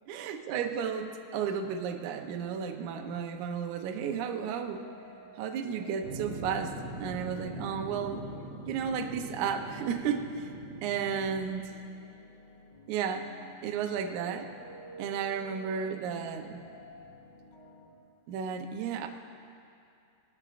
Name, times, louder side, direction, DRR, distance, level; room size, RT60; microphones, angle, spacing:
voice 1, 0.1-4.9 5.4-6.8 7.0-8.3 8.7-10.5 10.8-11.6 12.9-13.3 13.6-14.5 15.0-16.6 18.3-19.1, right 7 dB, 90° right, 4 dB, 1.7 m, -33 dB
sound 1, 4.1-17.9, right 1 dB, 35° left, 2.6 m, -53 dB
sound 2, 6.0-11.4, right 2 dB, 60° right, 1.7 m, -42 dB
19.5 x 13.5 x 2.5 m, 2.5 s
omnidirectional pair, 4.5 m